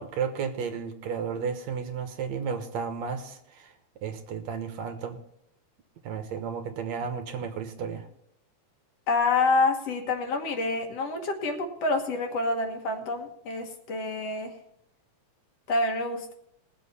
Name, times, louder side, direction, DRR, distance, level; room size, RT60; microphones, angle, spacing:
voice 1, 0.0-3.7 4.0-5.2 6.0-8.1, right 6 dB, 70° right, 6 dB, 2.3 m, -33 dB
voice 2, 9.1-14.5 15.7-16.3, left 3 dB, 60° left, 4 dB, 2.4 m, -27 dB
21.0 x 7.5 x 4.2 m, 0.76 s
omnidirectional pair, 3.4 m